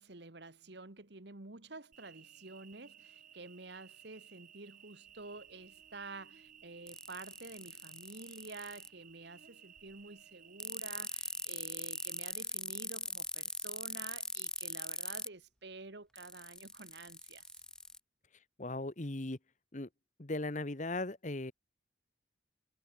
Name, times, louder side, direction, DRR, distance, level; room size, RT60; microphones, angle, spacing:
voice 1, 0.0-17.4, right 3 dB, 65° right, 1.7 m, -50 dB
Cricket, 1.9-12.3, right 9 dB, 45° right, 6.5 m, -59 dB
sound 1, 6.9-8.9 10.6-15.3 16.2-18.0, left 2 dB, 5° left, 1.3 m, -40 dB
voice 2, 18.6-19.4 19.7-19.9 20.2-21.5, left 2 dB, 40° left, 1.3 m, -37 dB
head